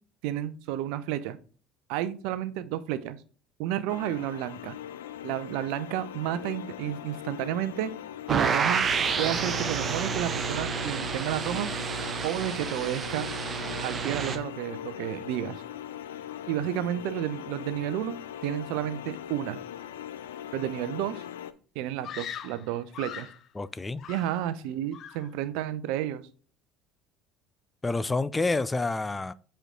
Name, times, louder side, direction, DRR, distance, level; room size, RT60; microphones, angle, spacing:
voice 1, 0.2-1.4 1.9-3.2 3.6-4.8 5.2-7.9 8.3-8.9 9.2-11.7 12.2-13.3 13.8-15.6 16.5-19.6 20.5-21.2 21.7-23.3 24.1-26.2, right 12 dB, 65° right, 0.7 m, -31 dB
sound 1, 3.9-21.5, left 10 dB, 75° left, 0.5 m, -40 dB
sound 2, 8.3-14.4, right 6 dB, 35° right, 1.0 m, -29 dB
Screaming, 22.0-23.5 24.0-24.6 24.9-25.3, left 9 dB, 50° left, 0.8 m, -41 dB
voice 2, 23.6-24.1 27.8-29.3, left 3 dB, 20° left, 0.5 m, -28 dB
8.0 x 4.5 x 3.7 m
hypercardioid pair, 65°, 0 cm